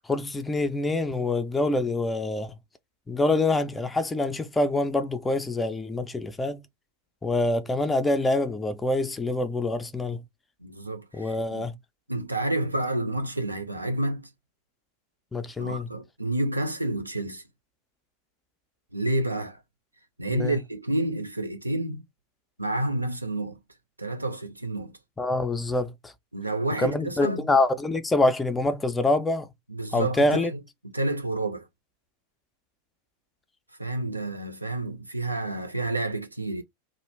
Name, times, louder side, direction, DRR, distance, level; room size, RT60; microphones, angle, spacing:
voice 1, 0.1-2.6 3.1-6.6 7.2-10.2 11.1-11.7 15.3-15.9 20.3-20.6 25.2-26.1 26.8-29.5 29.9-30.5, left 2 dB, 10° left, 0.4 m, -25 dB
voice 2, 10.6-11.6 12.1-14.3 15.6-17.4 18.9-19.6 20.2-22.0 22.6-23.6 24.0-25.0 26.3-27.5 29.7-31.7 33.8-36.6, right 2 dB, 85° right, 0.5 m, -29 dB
2.4 x 2.0 x 3.2 m
figure-of-eight pair, 90°, 0 cm